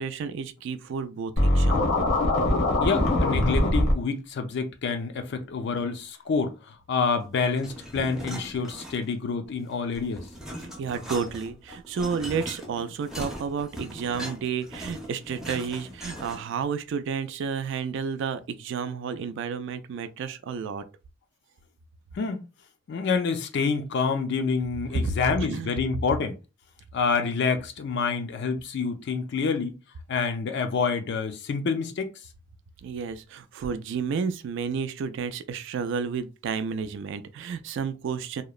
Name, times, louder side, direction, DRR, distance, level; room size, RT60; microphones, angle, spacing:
voice 1, 0.0-1.9 10.6-20.8 25.0-25.1 25.5-25.7 32.8-38.4, right 6 dB, 65° right, 0.3 m, -31 dB
Scratching (performance technique), 1.4-3.9, left 1 dB, 90° left, 0.9 m, -22 dB
voice 2, 2.8-10.3 22.2-22.4 22.9-26.4 26.9-29.7 30.1-32.1, left 5 dB, 60° left, 0.4 m, -27 dB
sound 1, 7.6-9.3 9.6-16.6, equal, ahead, 0.5 m, -39 dB
2.8 x 2.0 x 2.3 m
head